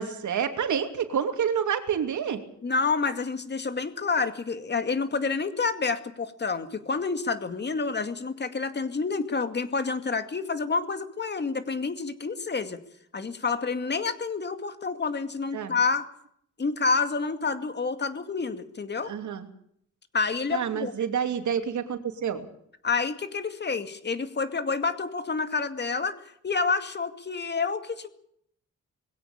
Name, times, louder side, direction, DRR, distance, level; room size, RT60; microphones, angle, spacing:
voice 1, 0.0-2.4 15.5-15.8 19.1-19.5 20.5-22.5, right 8 dB, 80° right, 7 dB, 2.9 m, -28 dB
voice 2, 2.6-12.8 13.1-16.1 16.6-19.1 20.1-20.9 22.8-28.1, left 4 dB, 35° left, 9 dB, 2.3 m, -28 dB
21.5 x 17.0 x 8.8 m, 0.69 s
wide cardioid pair, 125°, 29 cm